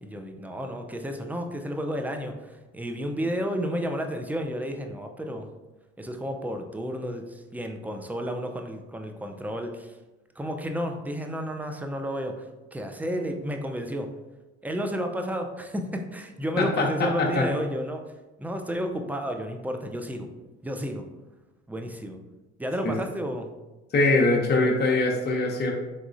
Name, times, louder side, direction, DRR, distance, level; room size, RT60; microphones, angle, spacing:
voice 1, 0.0-5.5 6.0-9.9 10.4-14.1 14.6-18.0 18.4-20.3 20.6-21.0 21.7-22.2 22.6-23.5, equal, 5° right, 4 dB, 0.5 m, -32 dB
voice 2, 23.9-25.7, left 2 dB, 35° left, -1 dB, 0.8 m, -22 dB
4.1 x 3.5 x 2.6 m, 1.1 s
hypercardioid pair, 65°, 30 cm